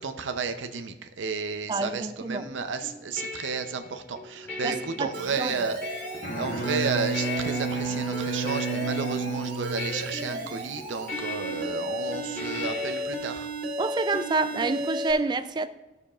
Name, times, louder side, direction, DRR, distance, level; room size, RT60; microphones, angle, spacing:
voice 1, 0.0-5.8 6.4-13.5, right 5 dB, 85° right, 0.6 m, -32 dB
voice 2, 1.7-2.5 4.6-5.1 5.4-5.5 13.8-15.7, right 3 dB, 25° right, 0.3 m, -28 dB
sound 1, 2.5-13.0, left 3 dB, 10° left, 2.5 m, -39 dB
Alarm, 5.1-15.1, right 1 dB, 50° right, 2.2 m, -35 dB
Bowed string instrument, 6.1-10.5, right 3 dB, 50° left, 1.1 m, -31 dB
15.0 x 6.8 x 2.4 m
head